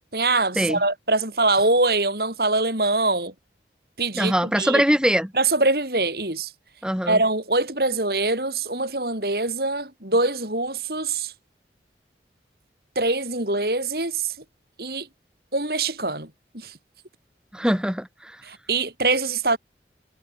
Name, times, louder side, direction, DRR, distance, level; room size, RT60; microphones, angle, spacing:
voice 1, 0.1-3.3 4.0-4.8 5.3-6.5 7.1-11.3 13.0-14.3 14.8-15.1 15.5-16.3 16.5-16.8 18.4-19.6, right 2 dB, 55° right, 5.7 m, -23 dB
voice 2, 4.2-5.3 6.8-7.2 17.5-18.4, equal, 5° right, 4.9 m, -22 dB
head